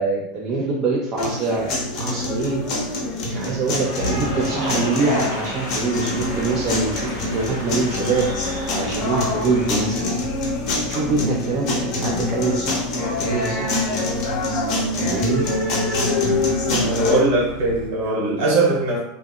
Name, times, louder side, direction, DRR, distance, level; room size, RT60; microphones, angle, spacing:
voice 1, 0.0-2.6 3.3-8.3 8.7-10.1 10.8-12.9 13.2-14.0 14.9-15.5 17.0-17.1, right 3 dB, 35° right, -4 dB, 0.4 m, -24 dB
sound 1, 1.2-17.2, left 2 dB, 45° left, 0.6 m, -25 dB
Purr, 1.5-18.1, right 2 dB, 80° right, 0.7 m, -39 dB
Cheering / Applause, 3.4-9.7, equal, 85° left, 0.6 m, -33 dB
voice 2, 16.7-19.0, right 2 dB, 55° right, -4 dB, 1.1 m, -20 dB
2.7 x 2.2 x 2.2 m, 0.79 s
figure-of-eight pair, 80°, 0 cm